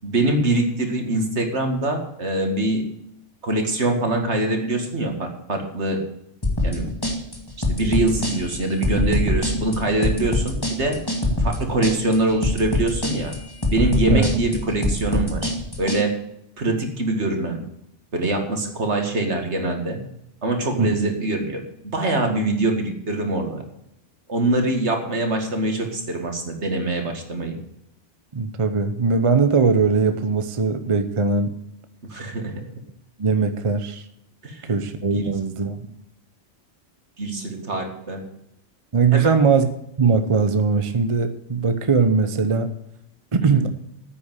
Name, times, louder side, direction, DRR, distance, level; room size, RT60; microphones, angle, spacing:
voice 1, 0.0-2.9 3.4-6.0 6.6-6.9 7.7-11.0 11.4-13.3 13.7-15.5 15.8-16.2 16.6-17.6 18.1-20.0 20.4-23.6 24.3-27.6 32.0-32.7 34.4-34.8 35.1-35.3 37.2-38.4 39.1-39.4 43.5-43.6, right 2 dB, 70° right, 4 dB, 2.4 m, -24 dB
sound 1, 6.4-16.0, left 2 dB, 20° left, 2.2 m, -23 dB
voice 2, 28.3-31.5 33.2-34.0 34.7-35.9 38.9-39.7 40.0-42.7 43.3-43.7, right 4 dB, 30° right, 9 dB, 0.8 m, -20 dB
9.9 x 8.7 x 8.1 m, 0.80 s
omnidirectional pair, 1.2 m